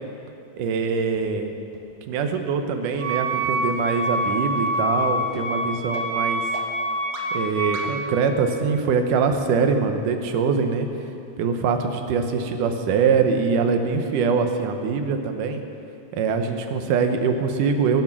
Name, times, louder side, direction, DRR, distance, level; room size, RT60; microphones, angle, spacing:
voice 1, 0.6-1.5 2.1-6.5 7.3-10.9 11.4-15.6 16.1-18.0, right 5 dB, 90° right, 6 dB, 2.6 m, -23 dB
sound 1, 1.1-1.2 1.7-1.8 2.3-2.4 2.9-3.0 3.5-3.6 4.1-4.2 4.7-4.8 5.3-5.4 5.9-6.0 6.5-6.6 7.1-7.2 7.7-7.8, right 5 dB, 60° right, 2.5 m, -38 dB
Wind instrument woodwind instrument, 3.0-7.9, right 1 dB, 45° right, 0.6 m, -26 dB
23.0 x 8.1 x 6.1 m, 2.7 s
omnidirectional pair, 3.5 m